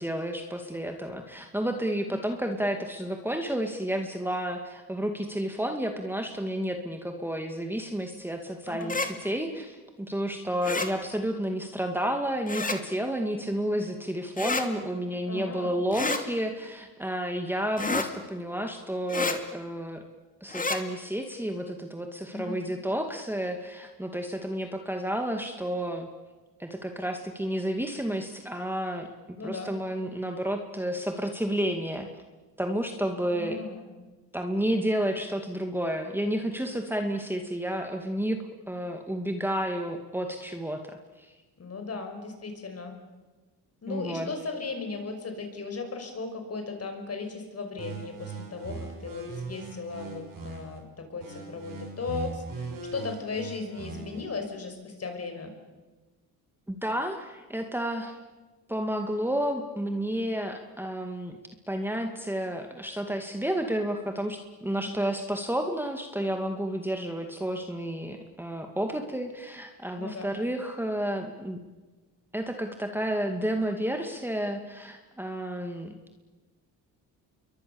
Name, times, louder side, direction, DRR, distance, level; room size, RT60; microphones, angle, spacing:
voice 1, 0.0-20.0 20.4-26.1 26.6-29.1 29.4-32.1 32.6-33.6 34.3-38.4 38.7-41.3 43.9-44.3 56.7-58.2 58.7-61.4 61.7-71.6 72.3-75.9, right 1 dB, 5° right, 4 dB, 2.2 m, -31 dB
sound 1, 8.8-9.1 10.6-10.9 12.5-12.8 14.4-14.7 15.9-16.2 17.8-18.1 19.1-19.4 20.5-20.8, left 3 dB, 20° left, 2.6 m, -29 dB
voice 2, 15.3-15.8 22.3-22.6 29.4-29.7 33.0-33.9 41.6-42.9 43.8-55.5 64.7-65.0 69.9-70.3, left 4 dB, 40° left, 5 dB, 5.9 m, -37 dB
sound 2, 47.8-50.8 51.2-54.2, right 4 dB, 55° right, 6.6 m, -39 dB
28.5 x 23.0 x 7.1 m, 1.2 s
cardioid pair, 90°, 39 cm